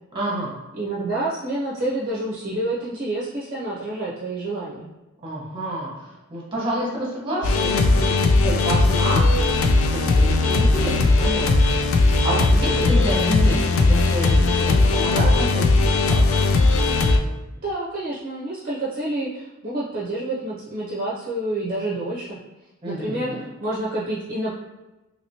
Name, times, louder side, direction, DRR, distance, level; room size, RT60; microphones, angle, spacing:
voice 1, 0.1-0.5 5.2-9.2 9.9-11.5 12.0-16.5 22.8-23.4, right 1 dB, 25° right, -5 dB, 1.1 m, -29 dB
voice 2, 0.7-4.9 17.6-22.4 22.8-24.5, right 1 dB, 40° right, -7 dB, 0.6 m, -28 dB
sound 1, 7.4-17.2, left 2 dB, 65° left, 0.4 m, -18 dB
3.0 x 2.9 x 2.8 m, 1.1 s
head